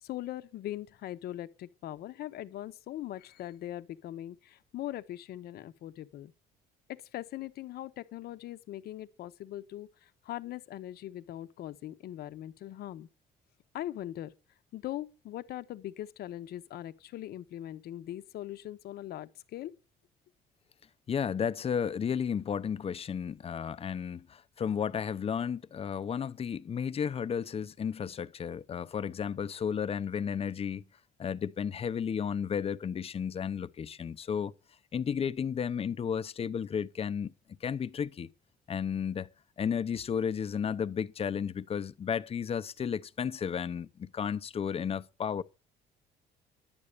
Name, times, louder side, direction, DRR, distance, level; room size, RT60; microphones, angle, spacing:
voice 1, 0.0-6.3 6.9-13.1 13.7-14.3 14.7-19.7, left 13 dB, 70° left, 1.0 m, -41 dB
voice 2, 21.1-30.8 31.2-34.5 34.9-37.3 37.6-38.3 38.7-39.3 39.6-45.4, left 7 dB, 35° left, 0.8 m, -33 dB
11.0 x 8.6 x 6.7 m
cardioid pair, 110°, 17 cm